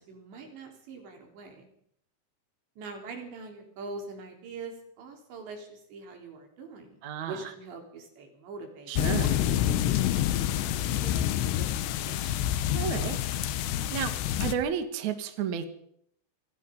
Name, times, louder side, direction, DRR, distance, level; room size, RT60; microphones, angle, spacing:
voice 1, 0.0-1.7 2.8-10.1 10.4-12.3, right 3 dB, 85° right, 3 dB, 6.2 m, -44 dB
voice 2, 7.0-7.4 8.9-9.3 12.7-13.2 13.9-14.1 14.4-15.7, right 8 dB, 50° right, 7 dB, 2.8 m, -31 dB
sound 1, 9.0-14.5, left 11 dB, 85° left, 3.3 m, -27 dB
27.0 x 19.5 x 5.6 m, 0.71 s
omnidirectional pair, 5.0 m